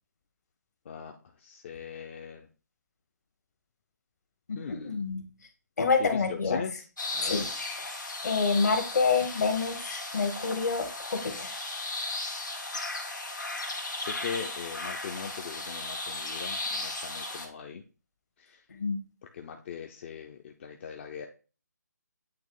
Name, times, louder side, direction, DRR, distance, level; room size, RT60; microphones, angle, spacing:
voice 1, 0.9-2.5 4.6-5.0 6.0-6.9 7.1-7.4 14.0-17.8 18.4-18.6 19.3-21.3, left 7 dB, 40° left, 4 dB, 0.5 m, -40 dB
voice 2, 4.5-5.2 5.8-6.6 7.2-7.4 7.8-11.6 18.8-19.0, left 4 dB, 65° left, 6 dB, 1.4 m, -28 dB
sound 1, 7.0-17.5, left 2 dB, 85° left, 1.6 m, -36 dB
8.6 x 3.0 x 3.7 m, 0.34 s
figure-of-eight pair, 145°, 10 cm